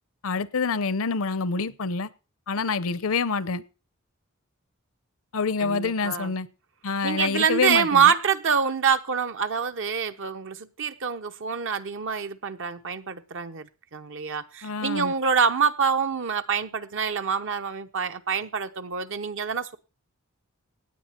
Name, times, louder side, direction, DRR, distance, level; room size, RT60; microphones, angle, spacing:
voice 1, 0.2-2.1 2.5-3.6 5.3-6.5 6.8-8.1 14.6-15.1, left 4 dB, 70° left, 0.7 m, -27 dB
voice 2, 5.6-6.3 7.0-13.7 13.9-19.8, right 6 dB, 60° right, 0.8 m, -26 dB
17.0 x 9.4 x 4.4 m
head